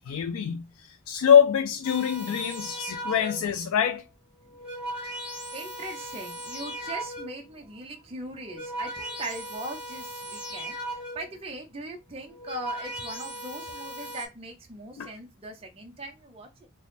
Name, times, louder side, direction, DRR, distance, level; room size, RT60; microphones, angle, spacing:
voice 1, 0.0-4.0 15.0-15.1, left 8 dB, 80° left, 0.3 m, -24 dB
sound 1, 1.8-3.6 4.3-7.5 8.3-11.4 12.2-14.3, right 1 dB, 5° right, 1.4 m, -38 dB
voice 2, 2.2-2.6 5.5-16.7, right 2 dB, 25° right, 0.5 m, -40 dB
3.2 x 2.0 x 4.0 m
head